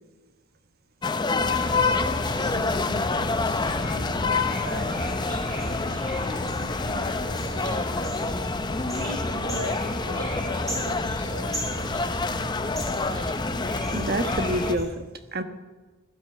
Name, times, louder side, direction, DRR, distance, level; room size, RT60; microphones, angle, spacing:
sound 1, 1.0-14.8, left 3 dB, 20° left, 0.6 m, -28 dB
sound 2, 1.4-14.8, equal, 15° right, 6.2 m, -34 dB
voice 1, 2.4-8.4 8.9-12.4, equal, 80° right, 2 dB, 4.9 m, -39 dB
voice 2, 13.9-15.4, right 1 dB, 45° right, 8 dB, 1.2 m, -28 dB
15.5 x 12.5 x 6.8 m, 1.3 s
head